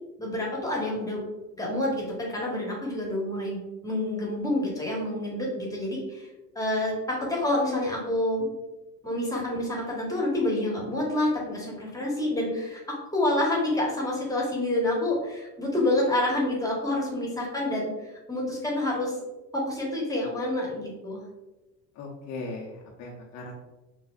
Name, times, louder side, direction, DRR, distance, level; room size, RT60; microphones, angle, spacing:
voice 1, 0.2-1.2 1.6-6.3 6.5-8.5 9.0-12.8 13.1-17.9 18.3-19.1 19.5-21.2, left 1 dB, 5° left, -3 dB, 1.2 m, -28 dB
voice 2, 22.0-23.5, left 2 dB, 35° left, -1 dB, 0.8 m, -38 dB
5.9 x 2.5 x 2.4 m, 1.0 s
hypercardioid pair, 80°, 50 cm